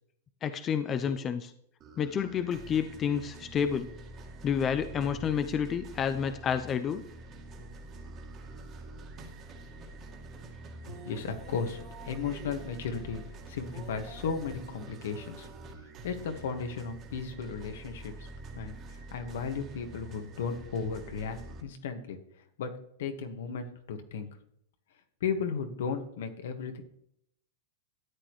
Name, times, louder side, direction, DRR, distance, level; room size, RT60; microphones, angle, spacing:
voice 1, 0.4-1.5 2.0-3.9 4.4-7.0, left 7 dB, 25° left, 10 dB, 0.5 m, -29 dB
sound 1, 1.8-21.6, right 2 dB, 30° right, 1.8 m, -46 dB
voice 2, 10.8-13.2 13.5-15.5 16.0-18.3 18.5-18.8 19.1-22.2 22.6-22.7 23.0-24.3 25.2-26.8, left 5 dB, 75° left, 6 dB, 1.6 m, -35 dB
13.0 x 8.6 x 3.2 m, 0.71 s
supercardioid pair, 145°, 0 cm